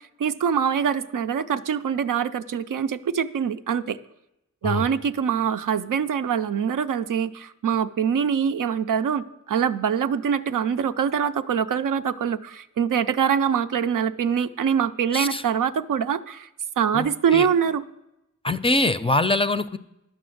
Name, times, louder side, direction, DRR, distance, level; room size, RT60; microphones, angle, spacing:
voice 1, 0.0-4.0 4.6-16.5 16.8-17.8, right 7 dB, 85° right, 10 dB, 0.5 m, -24 dB
voice 2, 18.4-19.8, left 2 dB, 20° left, 12 dB, 0.4 m, -23 dB
11.0 x 6.0 x 7.7 m, 0.87 s
wide cardioid pair, 80°, 31 cm